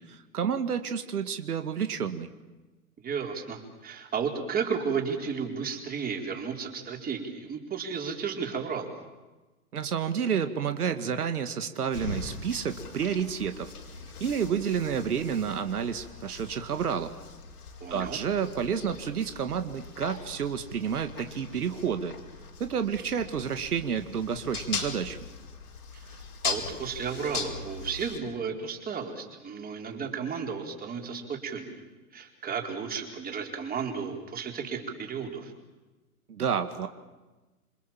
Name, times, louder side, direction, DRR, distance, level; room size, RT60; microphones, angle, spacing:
voice 1, 0.0-2.3 9.7-13.7 14.2-17.1 17.9-22.1 22.6-25.2 36.3-36.9, right 7 dB, 80° right, 8 dB, 2.0 m, -30 dB
voice 2, 3.0-9.0 17.8-18.2 25.9-31.8 32.1-35.5, right 6 dB, 20° right, 3 dB, 4.6 m, -33 dB
sound 1, 11.9-28.2, left 5 dB, 80° left, 4.7 m, -40 dB
27.0 x 26.5 x 7.5 m, 1.2 s
hypercardioid pair, 115°, 45 cm